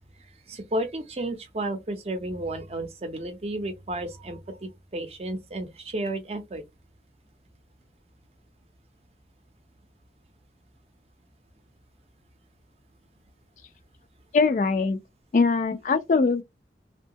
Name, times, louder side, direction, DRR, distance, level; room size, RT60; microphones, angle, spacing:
voice 1, 0.5-6.6, right 1 dB, 35° right, 0.5 m, -32 dB
voice 2, 14.3-15.0 15.3-16.4, left 4 dB, 45° left, 0.3 m, -22 dB
2.7 x 2.2 x 2.7 m
head